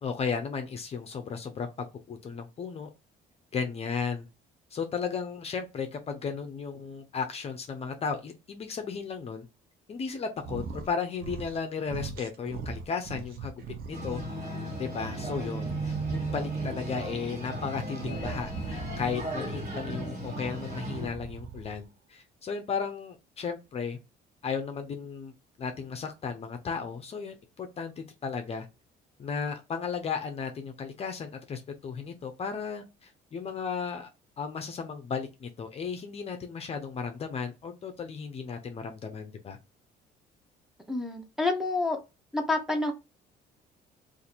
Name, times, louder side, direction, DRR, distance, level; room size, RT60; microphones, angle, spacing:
voice 1, 0.0-2.9 3.5-4.3 4.7-9.5 9.9-13.5 13.9-14.2 14.8-24.0 24.4-25.3 25.6-28.7 29.2-34.1 34.4-39.6, left 5 dB, 35° left, 0.6 m, -35 dB
sound 1, 10.4-10.9 11.2-11.6 11.9-14.2 14.7-16.6 17.9-19.4 20.8-21.8, right 5 dB, 65° right, 0.7 m, -40 dB
sound 2, 13.9-21.1, right 2 dB, 45° right, 1.4 m, -35 dB
voice 2, 40.9-42.0 42.3-42.9, left 3 dB, ahead, 0.7 m, -28 dB
2.6 x 2.5 x 4.2 m
cardioid pair, 110°, 17 cm